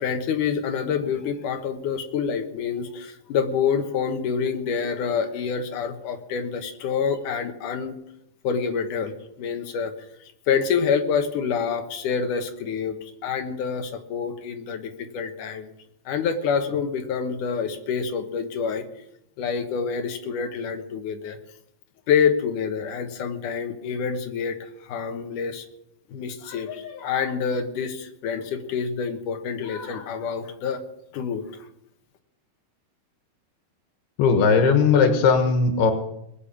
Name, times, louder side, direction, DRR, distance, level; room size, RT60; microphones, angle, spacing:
voice 1, 0.0-8.0 8.4-9.9 10.5-12.9 13.2-15.7 16.1-18.8 19.4-21.4 22.1-25.6 26.1-30.8 31.1-31.4, left 6 dB, 65° left, 6 dB, 2.5 m, -27 dB
voice 2, 34.2-35.9, left 5 dB, 90° left, 6 dB, 3.4 m, -18 dB
20.5 x 8.5 x 7.2 m, 0.80 s
omnidirectional pair, 4.4 m